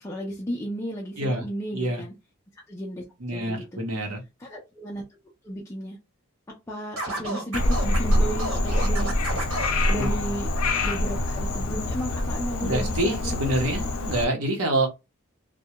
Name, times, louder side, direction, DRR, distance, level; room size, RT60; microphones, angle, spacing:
voice 1, 0.0-2.1 2.5-3.8 4.4-5.0 5.4-6.0 6.7-9.3 9.9-10.5 10.8-14.2, equal, 15° left, 0.3 m, -34 dB
voice 2, 3.2-4.2 9.9-10.1 12.6-14.9, right 1 dB, 85° right, 0.9 m, -26 dB
Scratching (performance technique), 7.0-9.8, right 2 dB, 70° right, 1.4 m, -32 dB
Frog, 7.5-14.2, left 1 dB, 85° left, 0.5 m, -25 dB
2.1 x 2.1 x 2.8 m
head